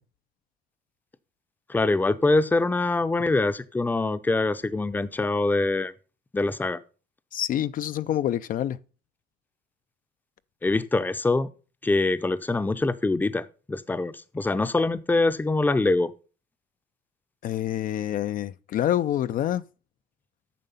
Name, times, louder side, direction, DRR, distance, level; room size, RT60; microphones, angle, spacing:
voice 1, 1.7-5.9 6.3-6.8 10.6-11.5 11.8-16.1, left 2 dB, 10° left, 0.6 m, -24 dB
voice 2, 7.3-8.8 17.4-19.6, left 11 dB, 55° left, 0.4 m, -27 dB
9.3 x 6.5 x 5.5 m
cardioid pair, 110°, 17 cm